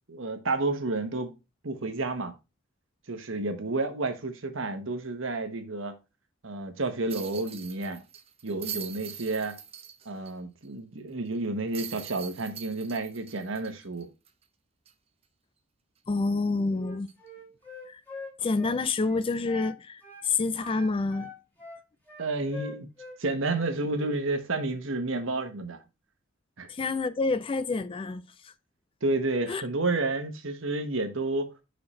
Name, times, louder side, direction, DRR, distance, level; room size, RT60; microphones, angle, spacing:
voice 1, 0.1-1.3 1.6-2.3 3.1-6.0 6.4-8.0 8.4-9.6 10.0-14.1 22.2-22.9 23.2-25.8 26.6-26.7 29.0-31.5, right 2 dB, 70° right, 1.2 m, -30 dB
sound 1, 7.1-10.3 10.7-10.8 11.7-14.4 14.9-15.0 17.1-17.3, right 8 dB, 30° right, 0.7 m, -42 dB
voice 2, 16.1-17.1 17.9-18.0 18.4-21.3 26.7-28.5 29.5-29.6, left 3 dB, 25° left, 0.4 m, -28 dB
Wind instrument woodwind instrument, 16.8-19.8 20.0-20.3 20.6-23.2 23.5-24.2, left 2 dB, 10° left, 2.1 m, -43 dB
5.8 x 5.2 x 4.3 m
head